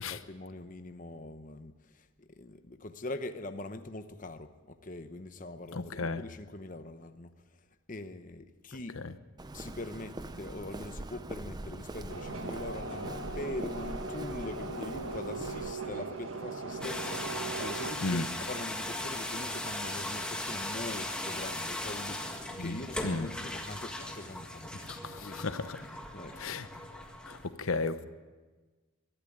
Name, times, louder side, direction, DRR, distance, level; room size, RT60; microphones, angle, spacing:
voice 1, 0.0-7.4 7.9-9.0 9.5-26.6, left 2 dB, 40° left, 0.9 m, -43 dB
voice 2, 5.7-6.2 18.0-18.3 22.6-22.8 23.0-23.3 24.9-25.8 26.4-26.7 27.3-28.0, left 3 dB, 90° left, 0.9 m, -34 dB
Walk footsteps, 9.4-15.7, right 2 dB, 20° right, 0.6 m, -43 dB
sound 1, 12.1-17.9, right 3 dB, 75° right, 1.5 m, -39 dB
sound 2, 16.8-27.5, left 1 dB, 5° left, 1.7 m, -38 dB
23.5 x 12.0 x 9.2 m
head